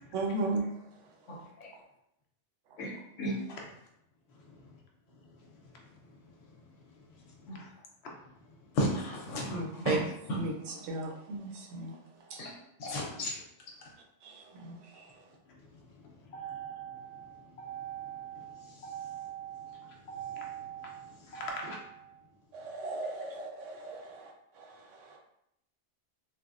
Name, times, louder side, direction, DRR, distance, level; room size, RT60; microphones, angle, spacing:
voice 1, 0.1-0.7 9.5-10.0 10.4-11.9 12.3-12.4 14.2-15.0 22.5-24.3 24.6-24.7 25.0-25.2, right 2 dB, 85° right, 1 dB, 0.9 m, -35 dB
voice 2, 1.3-1.7 2.8-2.9 3.2-3.4 7.5-7.6 8.7-10.0 10.3-10.4 10.7-10.8 12.4-12.5 12.8-13.3, equal, 90° left, -1 dB, 1.1 m, -33 dB
voice 3, 16.3-22.2, right 6 dB, 65° left, -1 dB, 0.8 m, -42 dB
3.4 x 2.0 x 2.4 m, 0.80 s
omnidirectional pair, 1.2 m